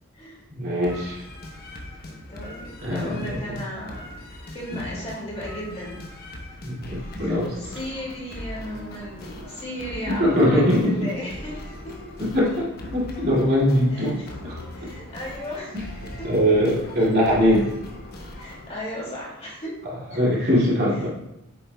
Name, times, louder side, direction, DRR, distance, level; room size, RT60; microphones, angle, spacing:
voice 1, 0.5-1.2 2.8-3.6 4.7-4.8 6.6-7.5 10.1-10.9 12.3-14.5 16.2-17.7 20.1-21.1, equal, 50° right, -6 dB, 2.5 m, -21 dB
sound 1, 0.8-18.8, left 1 dB, 50° left, 1.1 m, -40 dB
voice 2, 2.1-6.1 7.6-12.0 13.9-14.3 14.7-15.8 16.2-16.4 17.0-17.2 18.4-19.8 20.1-20.2 20.9-21.1, equal, 30° left, -5 dB, 2.5 m, -35 dB
8.4 x 7.1 x 2.3 m, 0.85 s
head